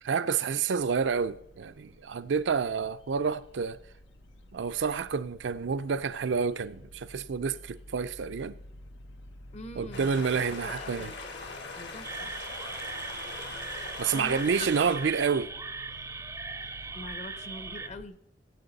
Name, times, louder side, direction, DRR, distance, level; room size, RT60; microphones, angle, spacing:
voice 1, 0.0-3.8 4.5-8.6 9.8-11.1 14.0-15.5, right 6 dB, 70° right, 0.5 m, -29 dB
sound 1, 0.7-18.1, left 1 dB, 90° left, 0.7 m, -51 dB
voice 2, 9.5-11.2 11.8-12.3 14.1-14.7 15.0-15.1 16.9-18.2, left 2 dB, 40° left, 0.8 m, -43 dB
sound 2, 9.9-15.0, left 3 dB, 70° left, 2.2 m, -41 dB
sound 3, 12.0-17.9, right 4 dB, 15° right, 0.5 m, -39 dB
16.5 x 8.5 x 4.0 m
head